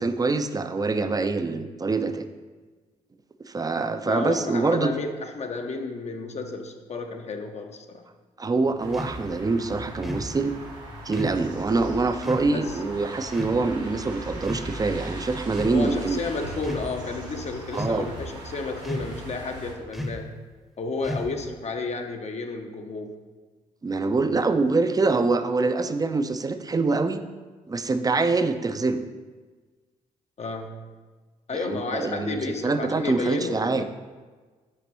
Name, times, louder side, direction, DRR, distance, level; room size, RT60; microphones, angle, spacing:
voice 1, 0.0-2.3 3.5-4.9 8.4-10.5 11.0-16.2 17.7-18.1 23.8-27.2 27.7-29.0 31.5-33.8, right 3 dB, 20° right, 9 dB, 0.4 m, -25 dB
voice 2, 4.0-8.0 12.5-13.1 15.7-20.3 20.8-23.1 30.4-30.9 31.5-33.8, left 3 dB, 40° left, 5 dB, 0.6 m, -32 dB
sound 1, 8.8-19.7, right 1 dB, 85° right, 0.9 m, -39 dB
sound 2, 8.9-9.2 10.0-10.3 11.1-11.4 12.2-12.5 13.3-13.6 14.4-15.0 15.5-15.8 16.5-16.9 17.7-18.2 18.8-19.2 19.9-20.3 21.0-21.5, left 1 dB, ahead, 0.8 m, -34 dB
6.1 x 5.1 x 3.1 m, 1.4 s
hypercardioid pair, 40°, 17 cm